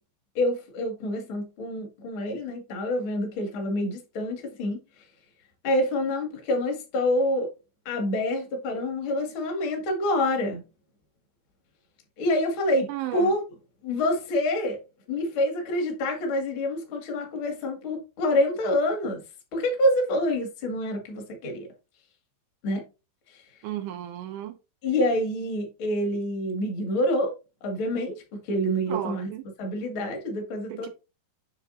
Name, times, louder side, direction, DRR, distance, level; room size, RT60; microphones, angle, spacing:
voice 1, 0.3-4.8 5.6-7.5 7.9-10.6 12.2-13.4 13.8-14.8 15.1-19.2 19.5-21.7 22.6-22.8 23.3-23.4 24.8-27.3 27.6-28.2 28.4-29.3 29.6-30.9, left 1 dB, 45° left, 1.7 m, -27 dB
voice 2, 12.9-13.4 23.6-24.6 28.9-29.5 30.7-30.9, right 12 dB, 85° right, 3.1 m, -34 dB
7.6 x 6.4 x 2.6 m
omnidirectional pair, 5.3 m